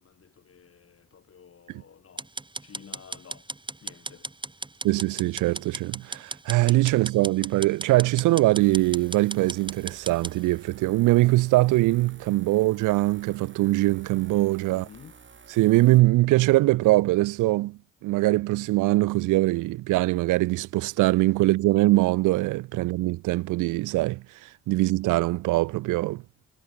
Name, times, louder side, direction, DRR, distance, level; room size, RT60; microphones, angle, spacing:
voice 1, 0.0-2.3 2.6-3.5 3.8-4.3 14.7-15.2, left 7 dB, 50° left, 7.7 m, -51 dB
sound 1, 2.2-10.3, right 2 dB, 15° right, 3.3 m, -36 dB
voice 2, 4.8-14.8 15.6-26.2, right 19 dB, 90° right, 0.8 m, -22 dB
sound 2, 8.6-16.0, right 6 dB, 40° right, 6.8 m, -51 dB
cardioid pair, 90°, 30 cm